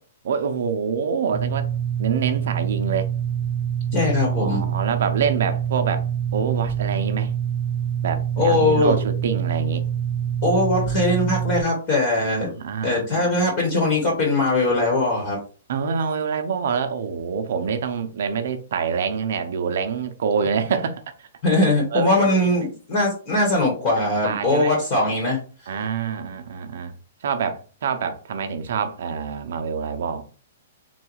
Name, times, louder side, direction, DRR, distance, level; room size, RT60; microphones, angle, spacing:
voice 1, 0.2-1.7 2.0-3.1 4.2-6.1 6.3-7.3 8.0-9.8 12.4-13.4 15.7-21.3 21.9-22.4 24.0-24.8 25.7-26.9 27.2-30.3, right 6 dB, 55° right, 0.6 m, -26 dB
sound 1, 1.3-11.6, right 9 dB, 5° right, 1.3 m, -25 dB
voice 2, 3.9-4.6 8.4-9.0 10.4-12.5 12.8-15.4 21.4-25.4, left 2 dB, 30° left, 1.3 m, -21 dB
3.9 x 2.4 x 4.5 m
hypercardioid pair, 175°, 0 cm